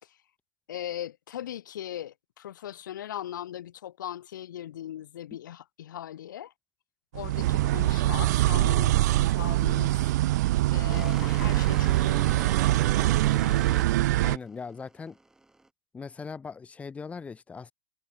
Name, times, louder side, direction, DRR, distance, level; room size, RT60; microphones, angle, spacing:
voice 1, 0.7-6.5 7.1-10.0 10.7-12.8, left 11 dB, 80° left, 3.2 m, -39 dB
sound 1, 7.1-14.4, right 16 dB, 60° right, 0.7 m, -24 dB
voice 2, 7.6-7.9 14.2-15.2 15.9-17.7, left 5 dB, 15° left, 2.3 m, -40 dB
sound 2, 9.9-15.7, right 2 dB, 5° right, 3.9 m, -42 dB
hypercardioid pair, 140°, 10 cm